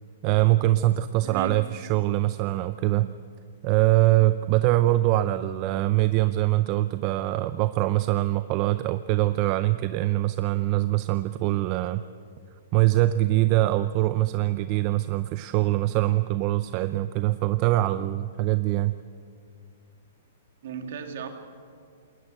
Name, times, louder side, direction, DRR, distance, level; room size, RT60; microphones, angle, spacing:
voice 1, 0.2-3.1 3.6-12.0 12.7-18.9, right 16 dB, 35° right, 13 dB, 0.5 m, -23 dB
voice 2, 1.2-1.6 20.6-21.3, right 6 dB, 65° right, 5 dB, 2.7 m, -35 dB
20.0 x 19.0 x 7.9 m, 2.3 s
hypercardioid pair, 140°, 0 cm